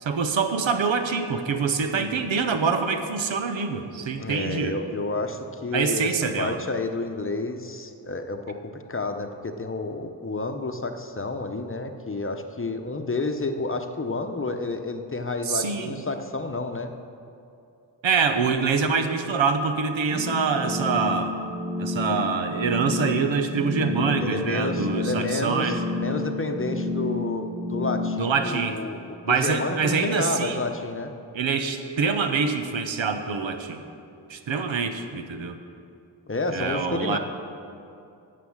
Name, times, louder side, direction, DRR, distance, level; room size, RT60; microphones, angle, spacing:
voice 1, 0.0-4.8 5.7-6.6 15.5-16.0 18.0-21.3 21.8-25.8 28.2-28.8 29.2-30.6 31.3-33.8 34.3-35.6 36.5-37.2, right 5 dB, 85° right, 7 dB, 0.9 m, -25 dB
voice 2, 1.9-2.3 4.2-16.9 24.2-29.0 29.3-31.1 36.3-37.2, left 3 dB, 30° left, 6 dB, 0.8 m, -30 dB
sound 1, 20.1-28.2, left 2 dB, 25° right, 3.0 m, -30 dB
9.6 x 6.8 x 7.3 m, 2.6 s
cardioid pair, 65°, 45 cm